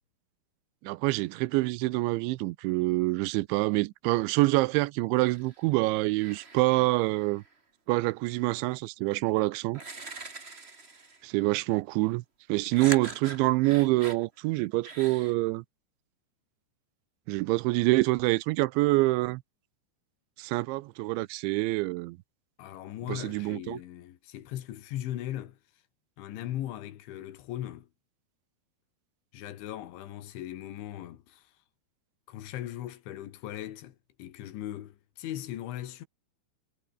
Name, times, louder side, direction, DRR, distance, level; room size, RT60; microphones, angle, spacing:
voice 1, 0.8-7.4 7.9-9.8 11.2-12.2 12.5-15.6 17.3-19.4 20.4-22.2 23.1-23.8, right 21 dB, 85° right, 2.9 m, -26 dB
sound 1, 5.3-5.7 6.1-7.5 9.1-9.2 9.7-11.3 12.7-14.2 14.8-15.3, right 3 dB, 40° right, 0.8 m, -42 dB
voice 2, 22.6-25.6 26.2-27.9 29.3-31.5 32.3-36.1, left 13 dB, 80° left, 4.2 m, -39 dB
omnidirectional pair, 5.4 m